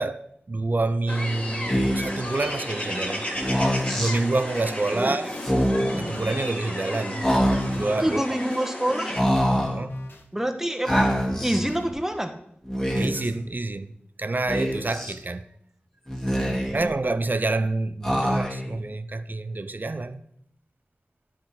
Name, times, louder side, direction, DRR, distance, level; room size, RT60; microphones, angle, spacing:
voice 1, 0.0-3.3 3.9-5.3 6.0-7.3 7.7-8.2 9.6-9.9 12.9-13.9 14.2-15.4 16.7-20.2, right 2 dB, 50° right, 0.5 m, -27 dB
sound 1, 1.1-9.2, left 1 dB, 30° left, 1.6 m, -33 dB
Speech, 1.7-2.2 3.4-4.1 5.3-6.0 7.2-7.9 9.1-9.8 10.9-11.6 12.6-13.3 14.5-15.1 16.1-16.9 18.0-18.7, equal, 10° left, 1.6 m, -24 dB
sound 2, 3.5-3.9 4.5-7.9 8.3-10.2 10.9-11.9, left 1 dB, 60° left, 1.2 m, -38 dB
voice 2, 8.0-9.2 10.3-12.3 16.4-17.0, right 1 dB, 10° right, 0.9 m, -27 dB
10.0 x 3.7 x 5.9 m
wide cardioid pair, 65°, 4 cm